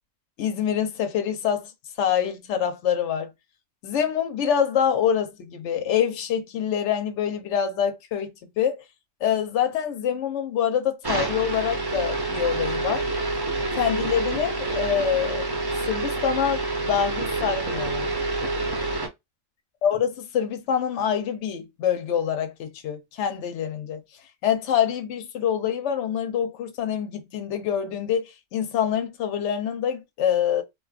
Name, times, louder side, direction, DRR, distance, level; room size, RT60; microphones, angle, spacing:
voice 1, 0.4-1.7 2.0-3.3 3.8-8.3 8.6-8.8 9.2-13.0 13.7-15.5 15.9-18.0 19.8-24.0 24.4-30.6, left 8 dB, 70° left, 1.0 m, -25 dB
sound 1, 11.0-19.1, right 2 dB, 30° right, 0.4 m, -27 dB
3.7 x 2.3 x 2.4 m
omnidirectional pair, 1.3 m